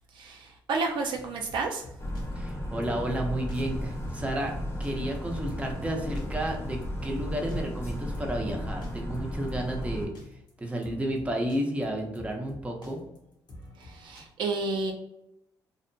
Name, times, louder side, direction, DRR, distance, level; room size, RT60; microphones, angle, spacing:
voice 1, 0.1-1.9 13.8-14.9, right 3 dB, 65° right, 2 dB, 0.4 m, -31 dB
sound 1, 1.1-14.2, left 1 dB, 60° left, 0.8 m, -48 dB
sound 2, 2.0-10.1, equal, 30° left, 0.8 m, -34 dB
voice 2, 2.3-4.5 4.8-10.1 10.6-13.0, right 1 dB, 15° right, 1 dB, 0.7 m, -32 dB
2.7 x 2.1 x 2.6 m, 0.81 s
supercardioid pair, 70°, 9 cm